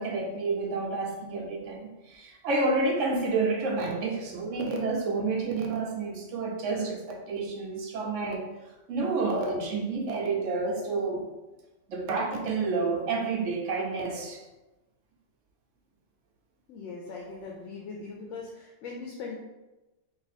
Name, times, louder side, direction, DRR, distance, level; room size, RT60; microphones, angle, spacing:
voice 1, 0.0-8.4 8.9-11.3 11.9-14.4, right 3 dB, 85° right, 0 dB, 1.0 m, -29 dB
voice 2, 16.7-19.4, left 4 dB, 85° left, -2 dB, 0.9 m, -40 dB
2.7 x 2.5 x 4.0 m, 1.1 s
omnidirectional pair, 1.2 m